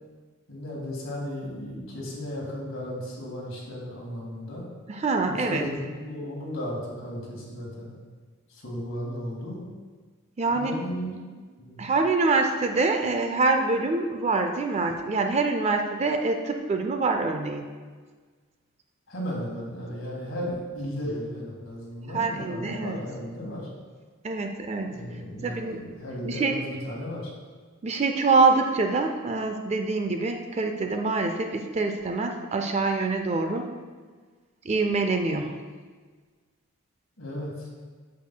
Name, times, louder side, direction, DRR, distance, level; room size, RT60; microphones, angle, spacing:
voice 1, 0.5-4.6 5.2-7.9 8.5-9.6 10.5-11.2 11.6-11.8 19.1-23.7 24.8-27.3 37.2-37.7, equal, 70° left, -3 dB, 1.8 m, -35 dB
voice 2, 4.9-5.7 10.4-10.8 11.8-17.7 22.1-23.0 24.2-25.0 25.4-25.8 26.2-26.5 27.8-33.7 34.6-35.5, right 3 dB, 30° right, 5 dB, 0.4 m, -25 dB
8.1 x 6.8 x 2.2 m, 1.5 s
head